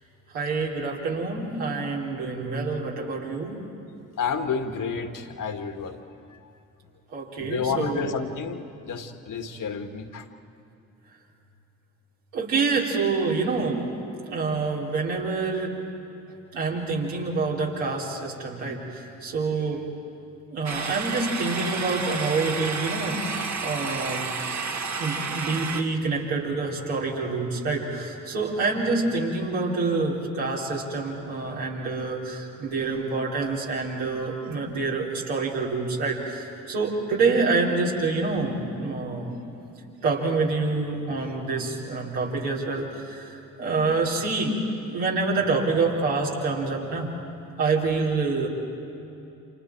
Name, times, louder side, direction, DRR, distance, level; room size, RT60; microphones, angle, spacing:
voice 1, 0.3-3.6 7.1-8.1 12.3-13.8 14.3-15.8 16.5-19.8 20.5-24.2 25.0-39.3 40.0-44.5 44.9-47.1 47.6-48.5, right 3 dB, 80° right, -5 dB, 4.1 m, -27 dB
voice 2, 4.2-6.0 7.4-10.3, left 5 dB, 50° left, 6 dB, 1.9 m, -30 dB
sound 1, 20.6-25.8, right 4 dB, 40° right, 1.7 m, -31 dB
29.0 x 27.5 x 4.6 m, 2.8 s
hypercardioid pair, 45°, 41 cm